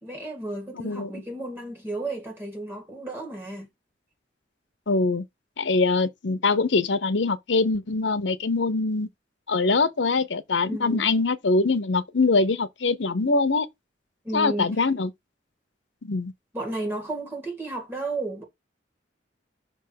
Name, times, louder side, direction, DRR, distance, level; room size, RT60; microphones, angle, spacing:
voice 1, 0.0-3.7 10.7-11.1 14.2-14.8 16.5-18.4, right 2 dB, 10° right, 1.9 m, -33 dB
voice 2, 4.9-5.2 5.6-9.1 9.5-13.7 14.3-15.1 16.0-16.3, left 3 dB, 80° left, 0.8 m, -23 dB
6.0 x 3.5 x 5.7 m
head